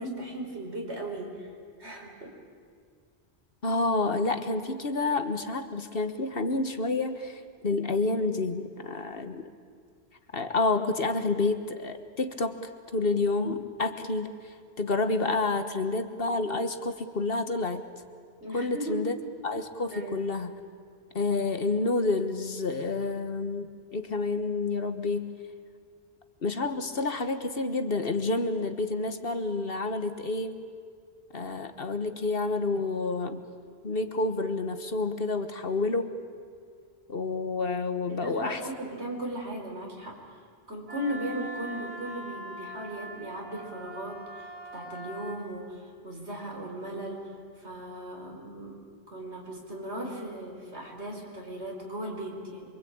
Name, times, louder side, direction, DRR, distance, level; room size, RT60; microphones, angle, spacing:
voice 1, 0.0-1.5 1.8-2.3 18.4-19.0 19.9-20.3 23.0-23.1 38.1-40.4 40.7-47.3 47.6-48.8 49.1-52.8, right 1 dB, 80° right, 0 dB, 5.0 m, -37 dB
voice 2, 3.6-9.5 10.3-12.6 12.9-17.8 18.5-19.1 19.4-20.5 21.1-25.3 26.4-30.6 31.3-33.4 33.8-36.1 37.1-38.6, left 3 dB, 60° left, 8 dB, 1.6 m, -29 dB
Wind instrument woodwind instrument, 40.9-45.4, right 1 dB, 30° right, 2.9 m, -42 dB
26.0 x 24.5 x 8.8 m, 2.1 s
omnidirectional pair, 1.1 m